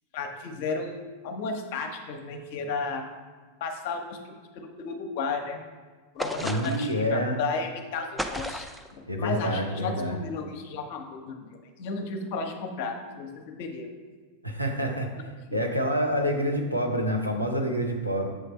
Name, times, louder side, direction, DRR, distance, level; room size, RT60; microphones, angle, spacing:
voice 1, 0.1-3.1 3.6-4.2 4.5-5.6 6.1-8.6 9.2-11.4 11.8-13.9 15.5-15.6, left 4 dB, 50° left, 4 dB, 0.7 m, -33 dB
sound 1, 6.2-7.0 8.2-8.9, right 1 dB, 5° right, 0.3 m, -33 dB
voice 2, 6.4-7.4 9.1-10.2 14.4-15.1 15.5-18.3, equal, 90° right, 1 dB, 0.7 m, -27 dB
7.4 x 3.3 x 4.2 m, 1.4 s
figure-of-eight pair, 90°, 0 cm